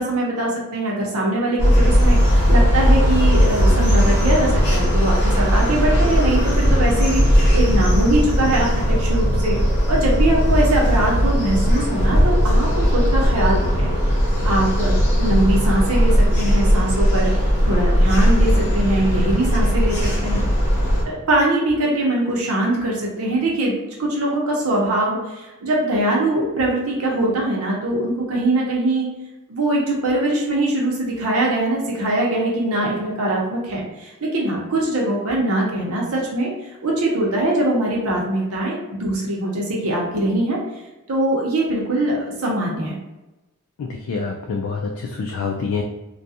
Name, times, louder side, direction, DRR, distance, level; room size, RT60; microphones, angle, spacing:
voice 1, 0.0-9.6 9.9-20.5 21.0-29.1 29.5-40.6 41.1-42.9, right 1 dB, 75° right, -3 dB, 0.8 m, -22 dB
sound 1, 1.6-21.0, equal, 55° left, 0.9 m, -17 dB
voice 2, 43.8-45.8, left 4 dB, 75° left, 1 dB, 0.3 m, -26 dB
2.4 x 2.2 x 2.7 m, 1.0 s
head